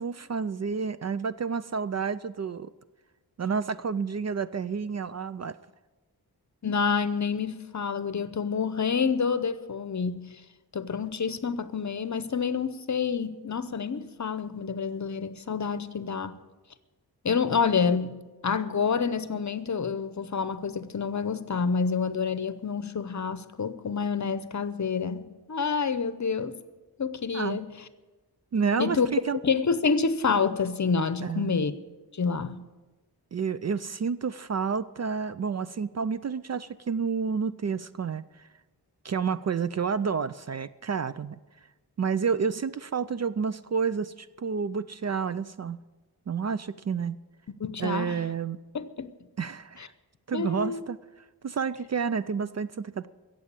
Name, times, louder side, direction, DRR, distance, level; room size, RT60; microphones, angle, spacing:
voice 1, 0.0-2.7 3.4-5.6 27.3-27.6 28.5-29.4 31.2-31.5 33.3-38.5 39.0-41.4 42.0-45.8 46.3-47.2 47.8-48.6 49.4-49.8 50.3-51.0 51.4-53.1, right 6 dB, 45° right, 0.4 m, -30 dB
voice 2, 6.6-10.3 10.7-16.4 17.2-25.2 25.5-26.6 27.0-27.7 28.8-29.1 29.4-31.7 32.1-32.6 47.6-48.2 48.7-49.1 50.3-50.8, left 5 dB, 45° left, 0.8 m, -28 dB
16.0 x 7.6 x 8.4 m
wide cardioid pair, 105°, 40 cm